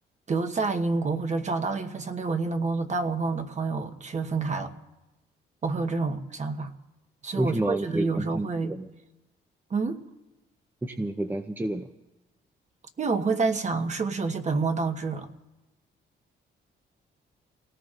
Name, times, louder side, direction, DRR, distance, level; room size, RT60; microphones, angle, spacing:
voice 1, 0.3-4.7 5.6-6.7 7.2-8.8 9.7-10.0 13.0-15.3, right 4 dB, 35° right, 1.2 m, -28 dB
voice 2, 7.4-8.9 10.8-11.9, right 1 dB, 10° right, 0.7 m, -29 dB
28.0 x 18.5 x 2.5 m
cardioid pair, 90°, 20 cm